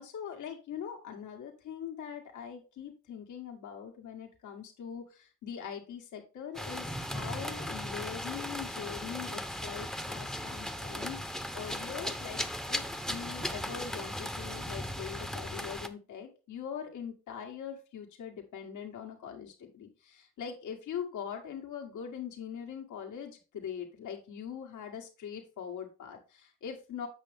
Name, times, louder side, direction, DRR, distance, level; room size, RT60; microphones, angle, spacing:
voice 1, 0.0-12.4 12.7-27.1, left 8 dB, 80° left, 2 dB, 1.9 m, -42 dB
sound 1, 6.5-15.9, equal, ahead, 0.8 m, -37 dB
8.1 x 6.2 x 3.5 m, 0.34 s
cardioid pair, 90°, 30 cm